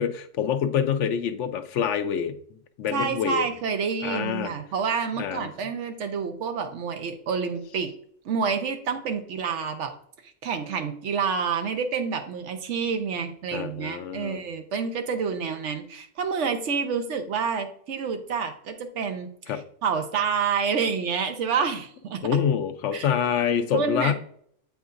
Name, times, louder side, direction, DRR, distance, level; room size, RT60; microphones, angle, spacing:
voice 1, 0.0-2.3 2.8-3.4 4.0-4.5 5.2-5.5 13.5-14.4 19.5-19.6 22.2-24.1, left 8 dB, 85° left, 9 dB, 0.9 m, -26 dB
voice 2, 2.9-7.9 8.2-9.9 10.4-22.2 22.9-23.1 23.7-24.1, right 6 dB, 85° right, 6 dB, 1.1 m, -28 dB
7.9 x 4.8 x 2.5 m, 0.62 s
omnidirectional pair, 1.2 m